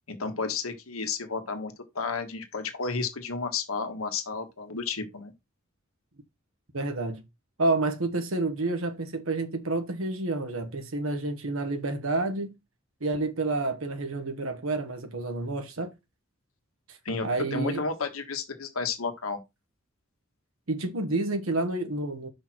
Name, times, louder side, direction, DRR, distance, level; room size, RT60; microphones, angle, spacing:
voice 1, 0.1-5.3 17.0-19.4, left 4 dB, 80° left, 1.5 m, -32 dB
voice 2, 6.7-7.2 7.6-12.5 13.0-15.9 16.9-17.8 20.7-22.3, right 2 dB, 70° right, 1.4 m, -29 dB
6.3 x 5.0 x 4.3 m
head